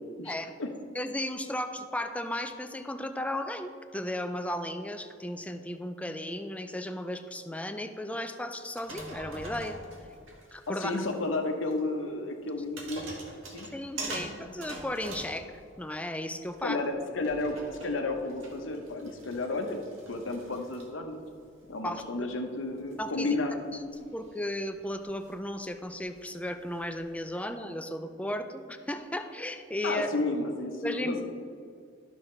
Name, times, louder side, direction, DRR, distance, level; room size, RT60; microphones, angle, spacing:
voice 1, 0.2-0.7 10.7-13.2 13.5-13.7 14.0-14.5 16.6-19.8 20.1-21.2 21.7-23.5 29.8-31.2, left 2 dB, 75° left, 3 dB, 0.9 m, -32 dB
voice 2, 0.9-9.8 10.5-10.9 13.7-16.8 21.8-22.3 23.0-23.3 23.8-30.1 30.8-31.2, left 1 dB, 5° left, 8 dB, 0.4 m, -35 dB
sound 1, 8.6-11.4 11.7-11.8 12.5-16.0 16.4-27.2, right 1 dB, 85° right, 1.5 m, -45 dB
12.0 x 6.3 x 3.2 m, 2.2 s
head